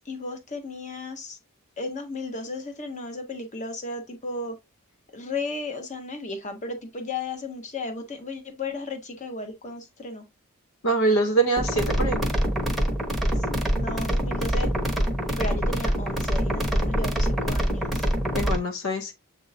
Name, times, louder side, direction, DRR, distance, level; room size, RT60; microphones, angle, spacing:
voice 1, 0.0-1.4 1.8-4.5 5.1-10.2 13.4-14.7 15.4-18.0, left 3 dB, 35° left, 1.0 m, -34 dB
voice 2, 10.8-12.2 18.3-19.1, right 2 dB, 65° left, 0.8 m, -24 dB
sound 1, 11.6-18.6, equal, ahead, 0.9 m, -25 dB
7.3 x 2.7 x 2.6 m
head